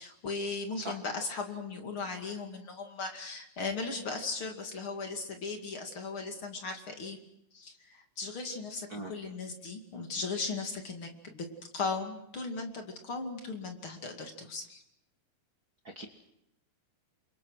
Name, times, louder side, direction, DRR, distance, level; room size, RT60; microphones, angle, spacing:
voice 1, 0.0-7.2 7.5-11.5 11.7-14.8, left 4 dB, 35° left, 4 dB, 2.7 m, -37 dB
voice 2, 0.7-1.0 8.9-9.1 15.8-16.1, right 1 dB, 65° right, 3 dB, 0.9 m, -39 dB
29.0 x 24.5 x 6.4 m, 0.81 s
omnidirectional pair, 4.6 m